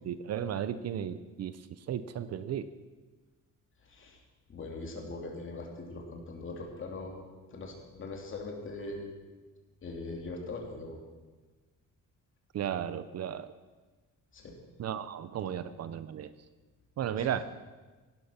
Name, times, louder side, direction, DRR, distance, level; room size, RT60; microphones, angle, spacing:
voice 1, 0.1-1.6 1.9-2.7 12.5-13.5 14.8-16.3 17.0-17.4, right 9 dB, 50° right, 14 dB, 0.6 m, -34 dB
voice 2, 3.8-4.2 4.5-7.2 7.5-9.1 9.8-11.0 14.3-14.6 17.1-17.3, left 3 dB, 40° left, 1 dB, 3.0 m, -41 dB
16.5 x 12.0 x 5.9 m, 1.3 s
cardioid pair, 165°, 32 cm